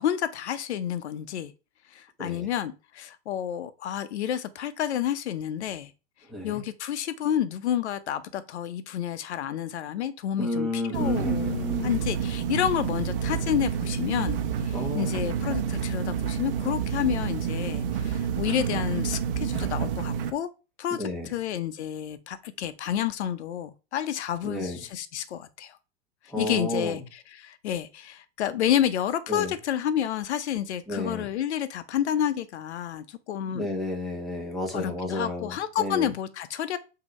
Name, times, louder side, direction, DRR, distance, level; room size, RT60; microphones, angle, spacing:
voice 1, 0.0-1.5 1.9-5.9 6.4-11.5 11.8-20.5 20.8-25.8 26.4-33.7 34.7-36.8, left 10 dB, 70° left, 0.7 m, -30 dB
voice 2, 6.3-6.6 10.4-12.0 14.7-15.6 20.9-21.3 24.4-24.8 26.3-27.0 29.3-29.5 30.9-31.3 33.5-36.1, left 1 dB, ahead, 1.2 m, -31 dB
sound 1, 10.9-20.3, right 7 dB, 50° right, 0.9 m, -29 dB
6.5 x 2.8 x 5.3 m
hypercardioid pair, 150°, 35 cm